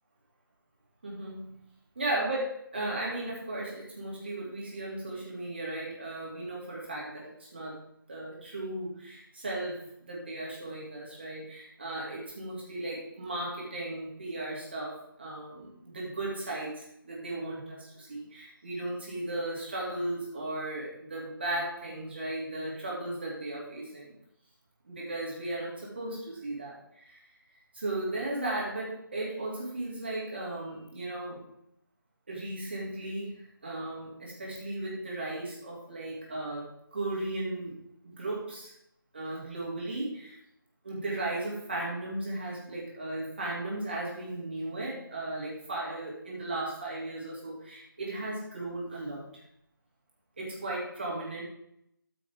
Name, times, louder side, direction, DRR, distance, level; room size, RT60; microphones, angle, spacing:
voice 1, 1.0-1.5 2.0-7.8 8.1-24.1 24.9-27.2 27.7-31.4 32.3-37.7 38.0-38.7 39.1-40.4 40.8-49.2 50.4-51.4, right 2 dB, 30° right, -4 dB, 2.7 m, -36 dB
13.0 x 6.1 x 3.6 m, 0.77 s
figure-of-eight pair, 175°, 12 cm